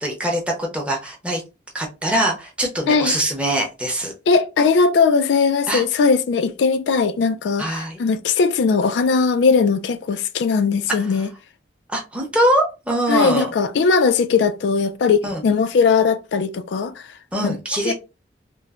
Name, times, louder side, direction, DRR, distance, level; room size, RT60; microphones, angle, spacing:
voice 1, 0.0-1.4 1.7-4.1 5.7-5.8 7.6-8.0 11.9-13.5 15.2-15.4 17.3-17.9, right 1 dB, 5° right, 0.6 m, -22 dB
voice 2, 4.3-11.3 13.1-17.0 17.4-17.6 17.8-17.9, left 5 dB, 80° left, 0.3 m, -19 dB
3.0 x 2.1 x 2.3 m
head